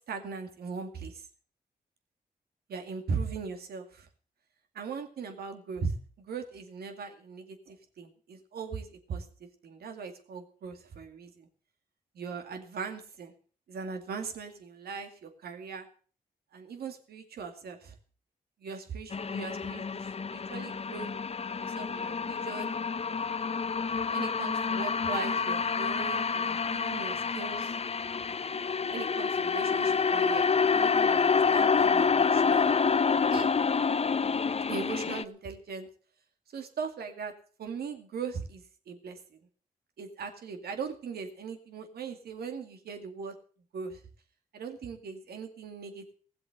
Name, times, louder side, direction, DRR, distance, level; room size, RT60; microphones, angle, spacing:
voice 1, 0.1-1.3 2.7-4.1 4.7-11.5 12.1-13.3 13.7-15.9 16.5-17.9 18.6-21.1 21.6-22.7 24.1-27.8 28.9-32.7 33.3-33.5 34.7-35.9 36.5-37.3 37.6-39.2 40.0-43.3 43.7-44.0 44.5-46.1, right 5 dB, 85° right, 6 dB, 2.3 m, -39 dB
sound 1, 19.1-35.2, left 5 dB, 40° left, 0.7 m, -28 dB
17.0 x 7.7 x 7.9 m, 0.44 s
cardioid pair, 55°, 16 cm